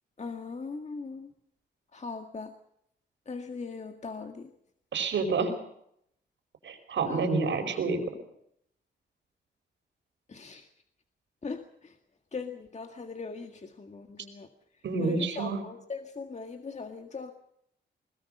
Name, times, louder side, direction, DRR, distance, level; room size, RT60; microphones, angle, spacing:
voice 1, 0.2-1.3 1.9-2.5 3.3-4.5 7.0-7.3 10.3-10.7 11.4-12.0 12.3-14.5 15.0-17.3, left 4 dB, 40° left, 6 dB, 1.8 m, -39 dB
voice 2, 4.9-5.5 6.6-8.0 14.8-15.6, right 4 dB, 85° right, 5 dB, 4.9 m, -28 dB
21.0 x 20.5 x 6.7 m, 0.72 s
cardioid pair, 90°, 19 cm